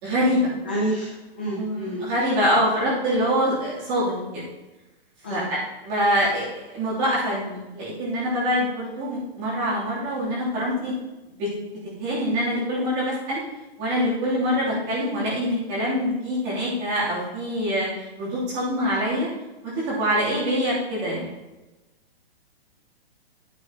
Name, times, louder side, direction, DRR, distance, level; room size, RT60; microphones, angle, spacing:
voice 1, 0.0-0.5 1.6-4.5 5.3-5.6 5.8-10.9 11.3-11.5 12.0-13.4 13.8-17.9 18.2-19.3 19.6-21.3, equal, 20° right, -8 dB, 3.1 m, -24 dB
voice 2, 0.6-2.0 5.2-5.5, right 1 dB, 10° left, -6 dB, 0.4 m, -29 dB
9.7 x 9.4 x 3.0 m, 1.1 s
hypercardioid pair, 175°, 31 cm